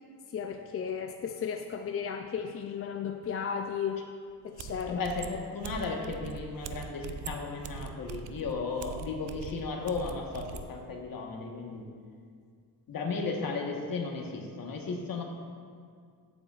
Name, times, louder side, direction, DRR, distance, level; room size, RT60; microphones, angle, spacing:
voice 1, 0.3-4.1 4.4-5.0, left 7 dB, 35° left, 5 dB, 0.4 m, -34 dB
sound 1, 4.3-4.4 4.6-10.7, right 7 dB, 75° right, 0.6 m, -42 dB
voice 2, 4.9-11.9 12.9-15.2, left 4 dB, 55° left, 1 dB, 1.4 m, -35 dB
13.5 x 7.9 x 2.4 m, 2.2 s
cardioid pair, 105°, 40 cm